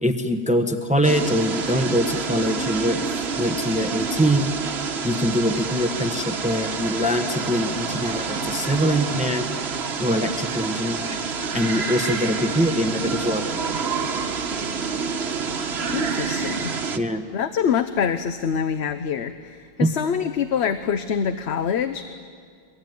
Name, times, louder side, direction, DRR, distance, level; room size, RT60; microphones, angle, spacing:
voice 1, 0.0-3.1 3.4-4.5 5.0-9.5 10.0-11.2 11.5-13.4 16.9-17.2 19.8-19.9, equal, 5° right, 6 dB, 1.1 m, -23 dB
sound 1, 1.0-17.0, right 5 dB, 80° right, 1.4 m, -28 dB
voice 2, 15.9-16.7 17.3-22.2, left 7 dB, 90° left, 10 dB, 1.1 m, -25 dB
23.5 x 22.5 x 9.4 m, 2.1 s
omnidirectional pair, 1.1 m